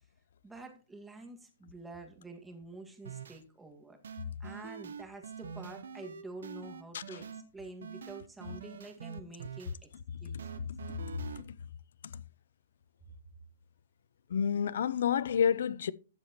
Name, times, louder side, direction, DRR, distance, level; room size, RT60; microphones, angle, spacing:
voice 1, 0.4-4.0 4.4-7.3 7.5-9.9 10.2-10.5, right 2 dB, 10° right, 1.8 m, -48 dB
sound 1, 3.0-3.4 4.0-7.4 7.8-9.7 10.4-11.4, right 6 dB, 80° right, 0.9 m, -44 dB
voice 2, 10.7-11.6 12.0-12.2 14.3-15.9, left 7 dB, 70° left, 0.5 m, -31 dB
12.5 x 7.3 x 2.9 m
hypercardioid pair, 140°, 0 cm